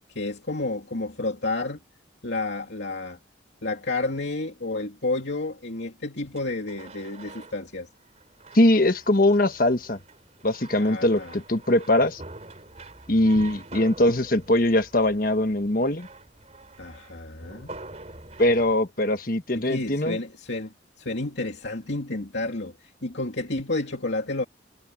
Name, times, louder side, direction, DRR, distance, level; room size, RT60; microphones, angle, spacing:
voice 1, 0.0-1.8 2.2-3.2 3.6-7.9 10.8-11.3 16.8-17.7 19.5-24.4, left 2 dB, 70° left, 2.6 m, -31 dB
sound 1, 6.3-18.8, right 2 dB, 35° right, 3.5 m, -45 dB
voice 2, 8.5-10.0 10.4-12.2 13.1-16.1 18.4-20.2, left 1 dB, 50° left, 1.4 m, -21 dB
head